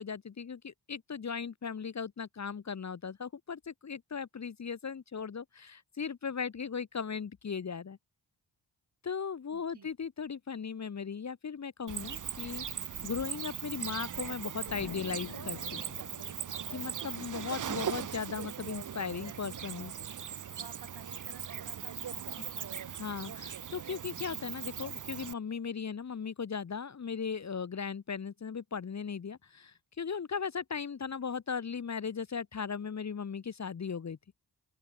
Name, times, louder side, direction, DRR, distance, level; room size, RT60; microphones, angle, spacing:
voice 1, 0.0-8.0 9.0-15.9 16.7-19.9 23.0-34.2, left 6 dB, 40° left, 0.8 m, -37 dB
voice 2, 9.5-9.9 16.5-17.1 19.2-19.6 20.6-23.0, right 6 dB, 70° right, 3.5 m, -53 dB
Cricket, 11.9-25.3, right 8 dB, 45° right, 0.7 m, -39 dB
Explosion, 14.7-17.3, left 10 dB, 75° left, 1.0 m, -49 dB
open air
cardioid pair, 65°, 41 cm